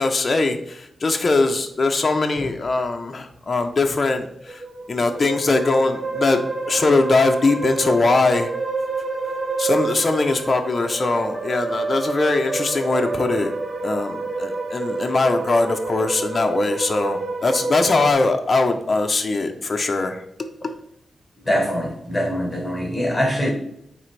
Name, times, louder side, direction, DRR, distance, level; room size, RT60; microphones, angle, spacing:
voice 1, 0.0-4.6 4.9-8.5 9.6-13.5 13.8-20.2, left 3 dB, 35° left, 4 dB, 0.5 m, -21 dB
sound 1, 4.5-18.1, right 3 dB, 25° right, 0.5 m, -28 dB
voice 2, 21.4-23.5, equal, 10° left, 1 dB, 1.3 m, -23 dB
9.0 x 3.4 x 3.2 m, 0.74 s
wide cardioid pair, 165°, 0 cm